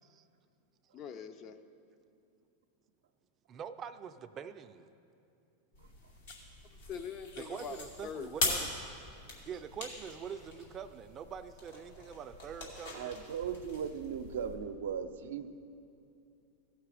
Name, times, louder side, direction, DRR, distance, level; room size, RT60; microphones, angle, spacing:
voice 1, 0.9-1.6 6.9-8.6, left 7 dB, 35° left, 9 dB, 0.5 m, -43 dB
voice 2, 3.5-4.9 7.4-8.7 9.5-13.2, right 7 dB, 30° right, 10 dB, 0.4 m, -44 dB
sound 1, 5.7-14.6, left 2 dB, 85° left, 2.6 m, -41 dB
voice 3, 12.9-15.5, right 7 dB, 80° right, 8 dB, 0.5 m, -38 dB
16.0 x 5.8 x 4.9 m, 2.6 s
supercardioid pair, 125°, 0 cm